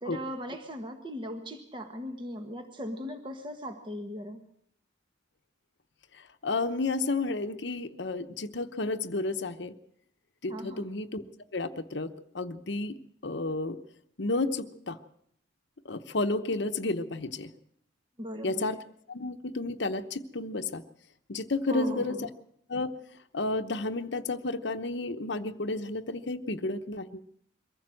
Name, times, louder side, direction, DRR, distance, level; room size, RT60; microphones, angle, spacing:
voice 1, 0.0-4.4 10.5-10.9 18.2-18.7 21.7-22.3, equal, 25° right, 5 dB, 1.5 m, -38 dB
voice 2, 6.1-9.7 10.4-11.2 11.5-13.8 14.2-15.0 15.8-17.5 18.4-18.8 19.1-20.8 21.3-22.2 22.7-22.9 23.3-27.2, left 2 dB, 70° left, 8 dB, 1.0 m, -31 dB
23.0 x 15.0 x 7.7 m, 0.68 s
head